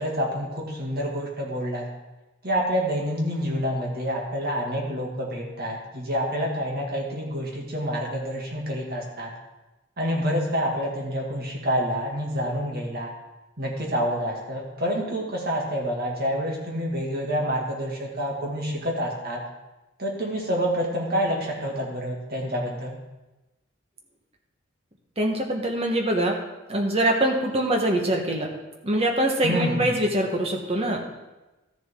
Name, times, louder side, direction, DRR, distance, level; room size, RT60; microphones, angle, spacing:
voice 1, 0.0-1.9 2.4-9.3 10.0-13.1 13.6-19.4 20.0-23.0 29.4-29.7, equal, 50° right, -2 dB, 2.2 m, -28 dB
voice 2, 25.2-26.4 26.7-28.5 28.8-31.1, right 1 dB, 30° right, 1 dB, 1.3 m, -23 dB
13.5 x 7.1 x 3.7 m, 1.1 s
head